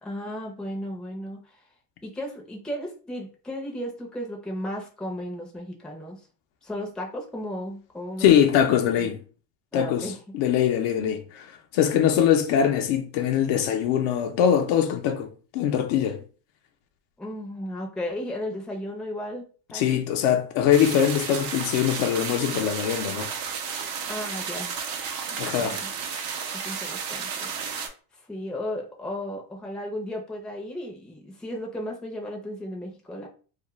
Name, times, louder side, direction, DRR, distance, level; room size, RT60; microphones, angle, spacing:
voice 1, 0.0-1.6 2.0-6.2 6.6-8.3 8.8-9.2 9.7-10.2 17.2-20.0 24.1-24.7 25.3-25.9 26.6-27.5 28.1-33.3, left 1 dB, ahead, 0.5 m, -35 dB
voice 2, 8.2-9.2 9.7-11.5 11.7-16.2 19.7-23.3 25.4-25.8, left 9 dB, 65° left, 0.6 m, -22 dB
sound 1, 20.7-27.9, right 6 dB, 55° right, 0.6 m, -32 dB
2.4 x 2.1 x 3.0 m
supercardioid pair, 100°, 46 cm